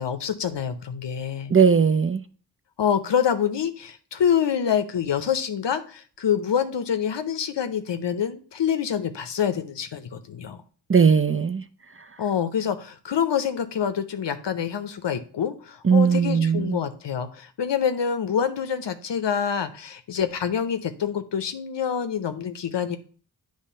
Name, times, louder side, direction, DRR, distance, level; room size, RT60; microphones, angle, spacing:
voice 1, 0.0-1.5 2.8-10.6 12.2-23.0, left 8 dB, 85° left, 0.6 m, -26 dB
voice 2, 1.5-2.2 10.9-11.6 15.8-16.8, right 6 dB, 30° right, 0.4 m, -18 dB
8.3 x 3.2 x 5.4 m
wide cardioid pair, 40°, 41 cm